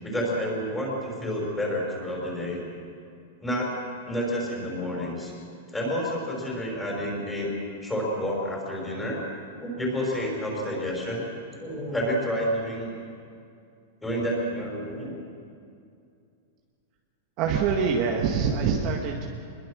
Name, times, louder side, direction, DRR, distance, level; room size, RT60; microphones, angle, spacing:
voice 1, 0.0-2.6 3.4-3.8 4.1-5.3 5.7-7.5 7.8-9.2 9.6-11.3 11.6-12.9 14.0-15.2, equal, 5° left, -2 dB, 5.6 m, -29 dB
voice 2, 17.4-19.3, right 6 dB, 35° right, 1 dB, 1.8 m, -24 dB
25.0 x 21.5 x 6.5 m, 2.4 s
supercardioid pair, 165°, 0 cm